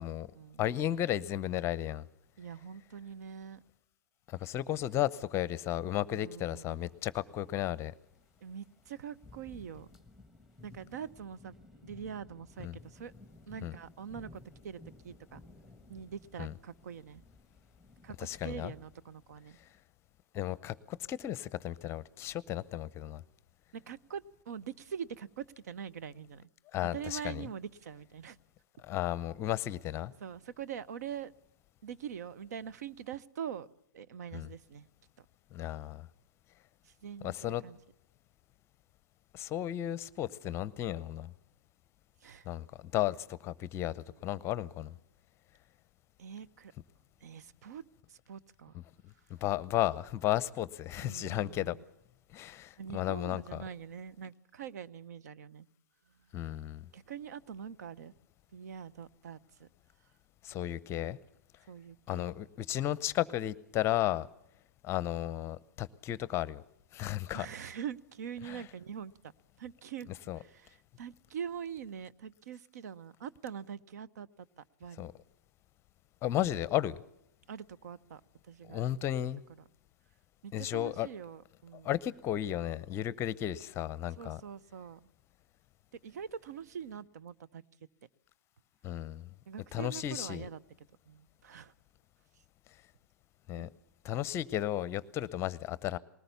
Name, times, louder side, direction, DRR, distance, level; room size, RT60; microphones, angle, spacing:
voice 1, 0.6-2.0 4.3-7.9 12.6-12.8 13.6-13.7 16.4-16.5 18.2-18.7 20.3-23.2 26.7-27.4 28.8-30.1 34.3-34.5 35.5-36.1 37.2-37.6 39.3-41.3 42.5-42.7 42.9-44.9 49.4-51.8 52.3-53.6 56.3-56.8 60.4-61.2 62.1-64.3 64.8-66.6 66.9-67.5 68.5-68.6 70.3-70.4 75.0-75.1 76.2-77.0 78.7-79.4 80.5-81.1 81.8-84.4 88.8-89.3 89.7-90.4 93.5-93.7 94.0-96.0, left 13 dB, 25° left, 20 dB, 0.7 m, -34 dB
voice 2, 2.4-3.6 6.1-6.8 8.4-9.9 10.6-13.1 13.5-15.4 15.9-17.2 18.0-18.2 18.4-19.6 23.7-26.5 26.9-28.4 30.2-31.3 31.8-33.7 33.9-34.9 36.8-37.8 42.2-42.5 44.0-44.4 46.2-46.7 47.2-47.8 48.1-48.8 51.0-51.8 52.8-55.7 56.9-58.1 58.5-59.7 61.7-62.3 67.3-69.1 69.6-75.1 77.5-78.2 78.5-78.9 80.4-81.9 84.2-85.0 86.0-87.6 89.5-91.7 93.6-93.7, right 8 dB, 60° right, 16 dB, 0.7 m, -44 dB
sound 1, 6.5-19.8, left 2 dB, 5° right, 1.6 m, -57 dB
20.5 x 18.5 x 6.9 m, 0.78 s
figure-of-eight pair, 110°, 10 cm